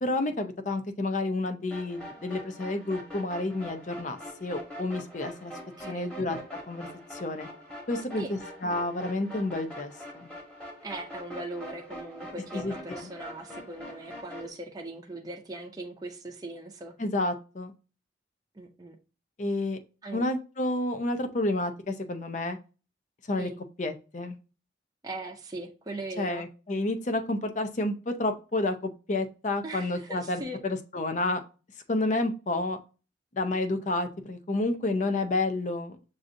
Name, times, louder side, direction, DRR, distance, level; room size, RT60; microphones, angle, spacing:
voice 1, 0.0-5.5 5.9-6.4 6.7-7.5 7.9-10.3 12.5-13.0 17.0-17.7 19.4-19.8 20.1-22.6 23.3-23.5 23.8-24.4 26.2-31.4 31.9-32.8 33.3-36.0, left 2 dB, 40° left, 0.6 m, -30 dB
sound 1, 1.7-14.5, equal, 5° left, 1.2 m, -43 dB
voice 2, 5.8-6.1 8.2-8.3 10.8-16.9 18.5-19.0 20.0-20.3 23.4-23.6 25.0-26.4 29.6-30.6, right 2 dB, 20° right, 0.5 m, -39 dB
6.3 x 2.6 x 2.5 m
head